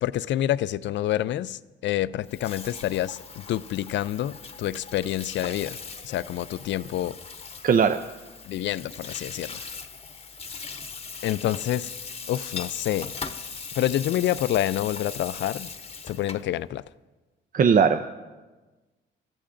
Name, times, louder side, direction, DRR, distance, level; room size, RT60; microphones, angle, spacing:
voice 1, 0.0-5.8 6.0-7.2 8.4-9.6 11.2-11.9 12.3-13.1 13.8-15.7 16.0-16.8, left 13 dB, 65° left, 17 dB, 0.4 m, -27 dB
Water tap faucet / Sink (filling or washing), 2.2-16.5, left 5 dB, 30° left, 0.9 m, -39 dB
voice 2, 7.6-8.0 17.5-18.1, right 6 dB, 45° right, 9 dB, 0.5 m, -19 dB
25.0 x 13.5 x 2.6 m, 1.2 s
cardioid pair, 90°, 20 cm